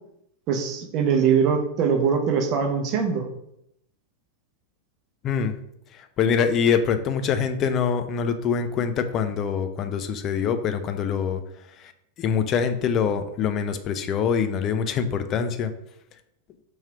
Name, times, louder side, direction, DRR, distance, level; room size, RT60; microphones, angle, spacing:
voice 1, 0.5-3.3, right 6 dB, 40° right, 3 dB, 0.7 m, -22 dB
voice 2, 5.2-5.5 6.2-11.4 12.2-15.7, left 7 dB, 35° left, 8 dB, 0.4 m, -24 dB
3.1 x 2.8 x 4.6 m, 0.77 s
figure-of-eight pair, 90°, 0 cm